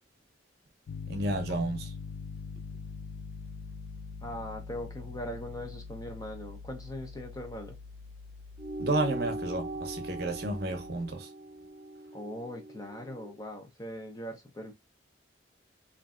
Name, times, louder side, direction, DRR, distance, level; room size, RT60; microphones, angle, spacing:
Piano, 0.9-11.1, left 4 dB, 90° left, 0.3 m, -44 dB
voice 1, 1.1-1.9 8.8-11.3, right 2 dB, 55° right, 0.8 m, -31 dB
voice 2, 4.2-7.8 12.1-14.7, left 1 dB, 20° left, 0.7 m, -40 dB
sound 1, 8.6-13.4, right 2 dB, 30° right, 0.3 m, -40 dB
3.2 x 2.5 x 2.4 m
head